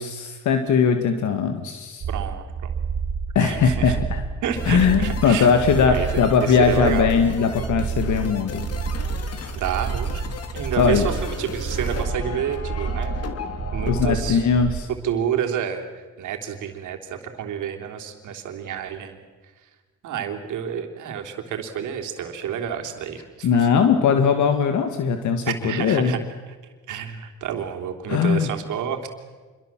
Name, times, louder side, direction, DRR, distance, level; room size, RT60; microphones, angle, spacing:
voice 1, 0.0-2.0 3.4-4.2 4.7-8.6 10.8-11.1 13.9-14.9 23.4-26.1 28.1-28.5, left 6 dB, 75° left, 7 dB, 2.0 m, -20 dB
sound 1, 2.0-14.8, right 5 dB, 50° right, 1.7 m, -29 dB
voice 2, 2.1-2.7 3.4-4.0 4.4-5.5 5.9-7.1 9.6-10.2 10.5-13.3 13.7-14.5 15.0-19.2 20.0-23.5 25.5-26.2 26.9-29.1, right 8 dB, 80° right, 4 dB, 3.5 m, -29 dB
sound 2, 4.6-14.0, left 5 dB, 55° left, 2.9 m, -37 dB
26.5 x 23.0 x 7.5 m, 1.4 s
cardioid pair, 90°, 30 cm